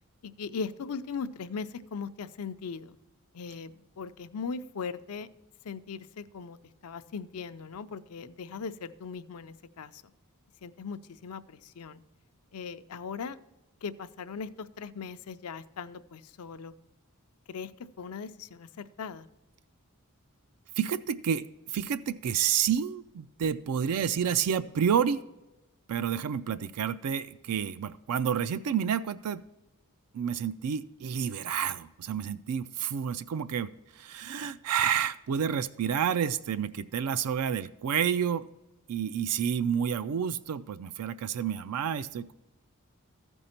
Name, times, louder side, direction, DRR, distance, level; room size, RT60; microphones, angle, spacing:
voice 1, 0.2-3.0 3.3-3.7 4.0-5.3 5.6-6.6 6.8-10.0 10.6-12.0 12.5-13.4 13.8-16.7 17.5-19.3, left 5 dB, 80° left, 0.5 m, -39 dB
voice 2, 20.8-25.2 25.9-29.4 30.1-38.5 38.9-42.3, right 8 dB, 90° right, 0.4 m, -29 dB
14.0 x 5.3 x 4.3 m
head